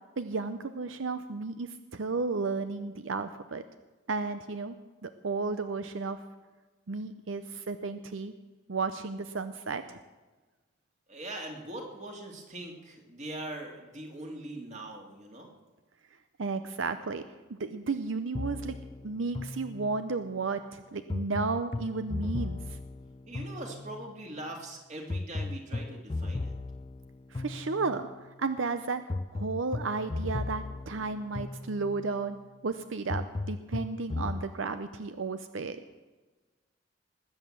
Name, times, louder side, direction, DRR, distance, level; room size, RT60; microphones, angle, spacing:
voice 1, 0.2-3.6 4.1-4.8 5.0-6.2 6.9-8.3 8.7-10.0 16.4-17.2 17.5-18.8 19.0-22.8 27.3-29.0 29.3-35.8, right 4 dB, 85° right, 10 dB, 0.7 m, -33 dB
voice 2, 11.1-15.5 23.3-26.5, right 1 dB, 35° right, 1 dB, 2.6 m, -41 dB
sound 1, 18.3-20.2 21.1-24.2 25.1-28.2 29.1-32.1 33.1-34.5, left 2 dB, 25° left, 0.4 m, -36 dB
20.0 x 8.3 x 7.4 m, 1.2 s
head